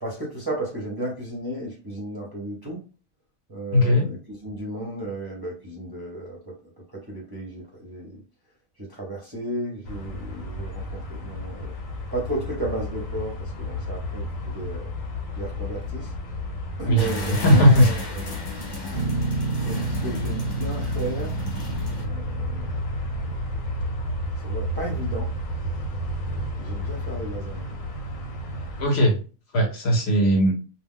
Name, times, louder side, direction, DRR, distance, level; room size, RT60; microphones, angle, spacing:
voice 1, 0.0-2.8 3.5-6.5 6.9-8.1 8.9-11.7 12.1-14.9 15.4-16.1 16.8-18.3 18.6-18.7 19.6-21.4 22.0-22.7 24.4-25.3 26.6-27.6, right 1 dB, 25° right, 0.5 m, -33 dB
voice 2, 3.7-4.1 16.9-17.9 28.8-29.2 29.5-30.6, equal, 60° left, 0.9 m, -18 dB
sound 1, 9.8-28.9, left 1 dB, 90° left, 1.1 m, -32 dB
sound 2, 17.0-22.0, left 1 dB, 35° left, 0.4 m, -35 dB
Guitar, 18.9-24.2, right 4 dB, 75° right, 0.3 m, -31 dB
2.3 x 2.1 x 3.6 m
omnidirectional pair, 1.3 m